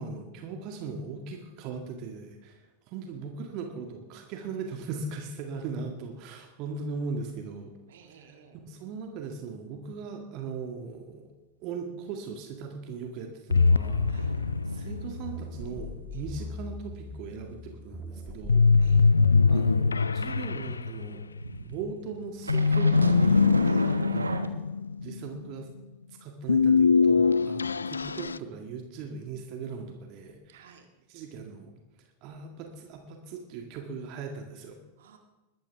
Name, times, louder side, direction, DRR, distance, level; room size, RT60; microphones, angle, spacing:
voice 1, 0.0-7.7 8.7-11.3 11.6-14.4 14.7-18.7 19.5-21.3 21.6-23.7 24.1-24.6 25.0-25.7 26.2-30.7 31.1-31.7 32.2-34.8, right 5 dB, 40° right, 3 dB, 1.8 m, -39 dB
voice 2, 7.9-8.6 14.1-14.3 16.1-16.3 18.8-19.1 23.7-24.0 30.5-30.9 35.0-35.2, right 7 dB, 60° right, 4 dB, 2.0 m, -55 dB
sound 1, 13.5-15.7 18.5-21.6 22.5-25.5 26.5-28.4, left 4 dB, 75° left, 0.3 m, -23 dB
sound 2, 13.6-18.9, left 3 dB, ahead, 1.8 m, -41 dB
sound 3, 14.0-15.9 16.2-16.5 16.8-20.4 21.4-24.5, right 3 dB, 80° right, 1.1 m, -37 dB
21.0 x 13.0 x 3.5 m, 1.1 s
figure-of-eight pair, 90°, 0 cm